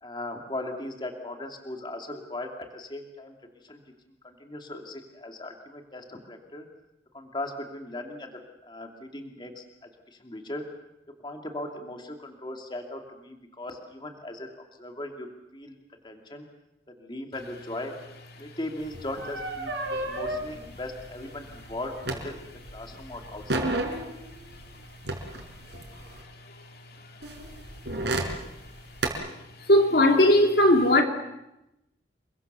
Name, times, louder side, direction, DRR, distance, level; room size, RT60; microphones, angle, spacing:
voice 1, 0.0-3.3 3.6-3.8 4.2-6.7 7.1-10.7 11.2-16.5 16.9-18.0 18.4-22.4 22.7-23.7, left 1 dB, 25° left, 2.7 m, -38 dB
sound 1, 18.8-22.7 23.0-26.2 27.2-29.1, right 2 dB, 75° right, 5.3 m, -32 dB
voice 2, 29.7-31.0, left 1 dB, 60° left, 2.8 m, -18 dB
29.5 x 23.0 x 6.9 m
head